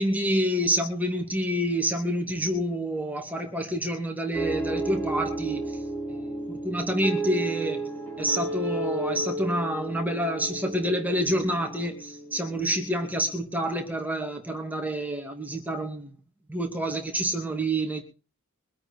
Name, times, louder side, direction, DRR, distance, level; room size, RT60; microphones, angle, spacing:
voice 1, 0.0-5.8 6.1-7.8 8.2-16.1 16.5-18.0, right 1 dB, 10° right, 2.6 m, -28 dB
sound 1, 4.3-13.1, right 2 dB, 10° left, 4.3 m, -32 dB
24.0 x 8.7 x 4.2 m
head